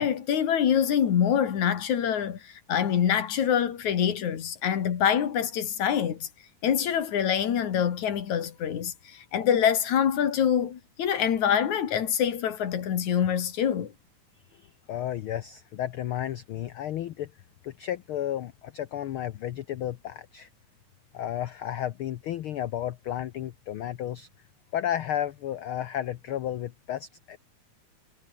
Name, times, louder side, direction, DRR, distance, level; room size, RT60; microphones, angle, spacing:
voice 1, 0.0-2.4 2.7-6.3 6.6-13.9, left 9 dB, 70° left, 3.4 m, -25 dB
voice 2, 14.5-17.3 17.6-20.5 21.1-24.3 24.7-27.4, left 11 dB, 85° left, 1.1 m, -33 dB
omnidirectional pair, 3.5 m